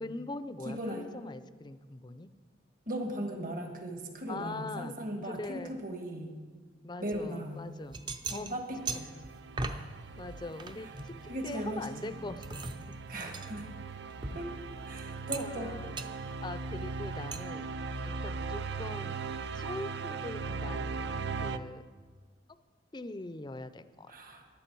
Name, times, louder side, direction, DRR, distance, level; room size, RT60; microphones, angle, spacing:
voice 1, 0.0-2.3 4.3-5.0 5.2-5.8 6.8-8.0 8.3-8.5 8.9-9.0 10.2-12.4 14.3-14.4 15.4-16.0 16.4-17.7 18.0-19.2 19.5-21.8 22.9-24.1, left 2 dB, 25° left, 12 dB, 0.5 m, -42 dB
voice 2, 0.6-1.1 2.9-6.4 7.0-7.7 8.3-9.1 9.6-9.9 11.3-12.2 13.1-13.7 14.3-14.5 14.8-15.8 24.1-24.5, right 1 dB, 50° right, 3 dB, 1.6 m, -38 dB
sound 1, 7.1-7.3 7.7-9.9 10.2-11.7 12.1-14.9 15.3-15.7 16.0-16.1 17.3-17.4, right 3 dB, 25° right, 0.6 m, -40 dB
sound 2, 8.7-21.6, right 4 dB, 70° right, 0.5 m, -39 dB
15.0 x 11.0 x 4.6 m, 1.5 s
head